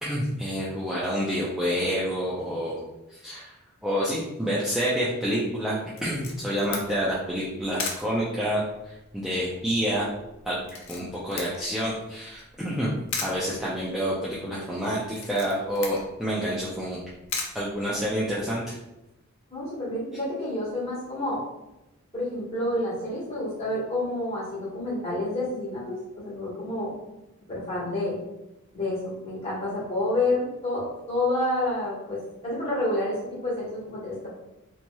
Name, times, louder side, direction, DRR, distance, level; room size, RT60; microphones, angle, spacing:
voice 1, 0.0-2.8 3.1-3.5 3.8-10.1 10.5-12.9 13.2-17.0 17.5-18.6, equal, ahead, -8 dB, 0.3 m, -28 dB
Camera, 6.0-18.5, left 4 dB, 60° left, 0.5 m, -39 dB
voice 2, 19.5-21.4 22.1-26.9 27.5-28.2 28.7-34.3, left 1 dB, 25° left, -9 dB, 1.3 m, -29 dB
3.0 x 2.8 x 2.2 m, 0.96 s
head